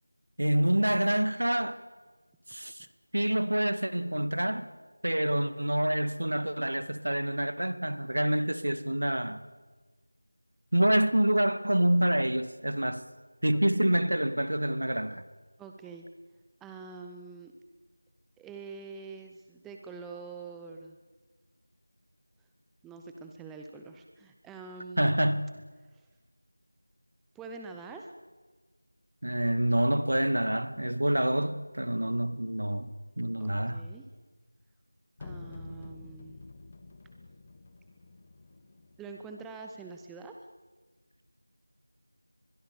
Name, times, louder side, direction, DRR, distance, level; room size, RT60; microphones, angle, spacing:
voice 1, 0.4-1.8 2.5-2.7 3.1-4.6 5.0-9.4 10.7-13.0 13.4-15.2 25.0-25.5 29.2-32.9 33.2-33.8, right 1 dB, 75° right, 1.9 m, -27 dB
voice 2, 15.6-16.1 16.6-17.5 18.4-21.0 22.8-25.2 25.9-26.1 27.3-28.1 33.4-34.0 35.2-36.4 39.0-40.4, right 4 dB, 5° right, 0.6 m, -45 dB
sound 1, 35.2-39.2, left 3 dB, 25° left, 1.7 m, -48 dB
23.0 x 21.5 x 6.9 m
figure-of-eight pair, 170°, 0 cm